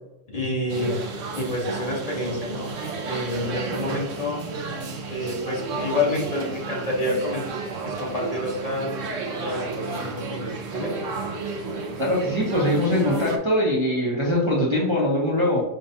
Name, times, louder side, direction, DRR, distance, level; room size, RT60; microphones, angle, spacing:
voice 1, 0.3-1.0 1.3-2.7 3.1-7.5 7.8-9.0 9.3-10.9, left 1 dB, 30° left, -4 dB, 1.2 m, -28 dB
sound 1, 0.7-13.4, right 3 dB, 85° right, 1.0 m, -32 dB
voice 2, 12.0-15.6, left 1 dB, 25° right, -5 dB, 0.8 m, -22 dB
5.2 x 2.3 x 2.7 m, 0.90 s
omnidirectional pair, 1.3 m